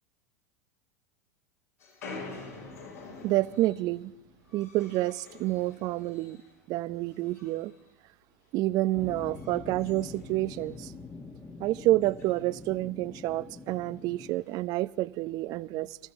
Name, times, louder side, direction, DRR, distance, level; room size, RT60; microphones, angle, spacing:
sound 1, 1.8-6.6 6.9-7.9 8.2-8.5 9.0-10.9 11.3-11.4 11.6-11.7 12.0-12.4 13.2-13.4 14.2-14.6, left 3 dB, 80° left, 7.2 m, -47 dB
voice 1, 3.2-4.1 4.5-6.4 6.7-7.7 8.5-10.9 11.6-16.0, right 17 dB, 50° right, 17 dB, 0.6 m, -29 dB
sound 2, 8.9-14.3, left 3 dB, 20° left, 1.6 m, -44 dB
28.0 x 14.0 x 3.6 m, 0.84 s
hypercardioid pair, 85°, 9 cm